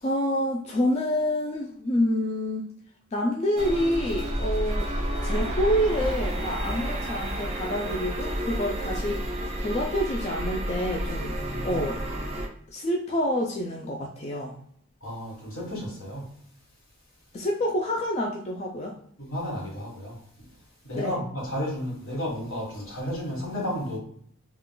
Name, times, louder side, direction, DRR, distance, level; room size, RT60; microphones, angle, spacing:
voice 1, 0.0-2.7 3.1-4.9 5.2-9.2 9.6-11.4 11.6-12.0 12.7-14.6 17.3-18.9 20.9-21.2, equal, 30° left, 0.3 m, -27 dB
sound 1, 3.6-12.5, right 1 dB, 30° right, 0.5 m, -30 dB
voice 2, 11.4-11.8 15.0-16.4 19.2-20.5 20.8-24.0, equal, 75° left, 1.4 m, -33 dB
3.6 x 2.3 x 2.2 m
head